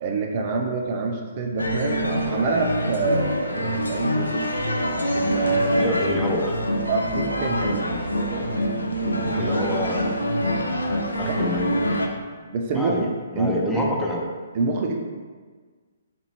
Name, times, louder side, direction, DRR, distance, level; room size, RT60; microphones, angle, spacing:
voice 1, 0.0-4.4 5.1-6.0 6.9-9.5 11.3-11.9 12.5-13.8 14.5-15.0, right 3 dB, 40° right, 2 dB, 0.4 m, -27 dB
sound 1, 1.6-12.1, equal, 85° left, 0.4 m, -25 dB
voice 2, 5.8-6.5 9.3-10.7 11.2-12.2 12.7-13.1 13.3-14.3, left 1 dB, 10° left, -2 dB, 0.5 m, -28 dB
3.0 x 3.0 x 4.1 m, 1.5 s
figure-of-eight pair, 125°, 0 cm